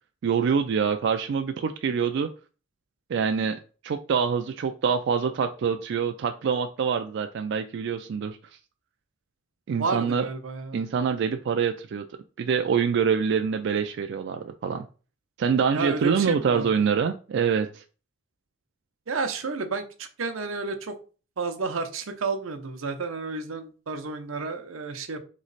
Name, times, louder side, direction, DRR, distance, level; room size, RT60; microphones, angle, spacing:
voice 1, 0.2-2.3 3.1-8.4 9.7-10.3 10.7-12.1 12.4-14.9 15.4-17.8, right 6 dB, 60° right, 6 dB, 0.3 m, -25 dB
voice 2, 9.8-10.8 15.7-16.7 19.1-20.9 21.4-25.2, right 4 dB, 85° right, 7 dB, 0.7 m, -31 dB
4.0 x 3.1 x 3.9 m, 0.36 s
head